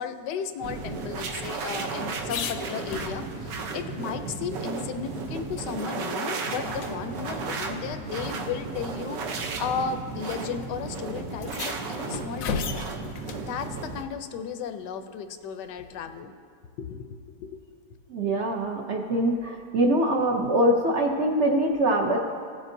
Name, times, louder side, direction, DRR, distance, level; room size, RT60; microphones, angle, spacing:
voice 1, 0.0-12.9 13.5-16.3 16.8-17.1 17.4-17.6, left 6 dB, 80° left, 8 dB, 1.2 m, -34 dB
sound 1, 0.6-3.6 4.0-4.1 4.4-5.9 6.2-6.4 6.8-6.9 8.0-8.1 9.0-9.2 10.2-10.4 10.6-10.7 11.3-13.5 15.8-16.2, left 6 dB, 65° left, 0.9 m, -37 dB
sound 2, 0.6-14.0, right 4 dB, 85° right, 1.4 m, -34 dB
voice 2, 18.1-22.2, right 1 dB, 55° right, 1 dB, 0.8 m, -23 dB
16.5 x 7.2 x 2.6 m, 2.3 s
omnidirectional pair, 1.8 m